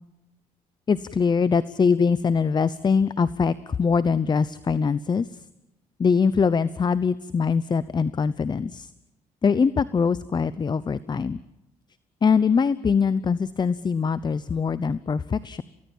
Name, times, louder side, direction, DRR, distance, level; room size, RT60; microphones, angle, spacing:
voice 1, 0.9-5.4 6.0-8.9 9.4-11.4 12.2-15.6, left 5 dB, 30° left, 17 dB, 0.8 m, -23 dB
29.0 x 18.5 x 7.3 m, 0.88 s
cardioid pair, 90°, 14 cm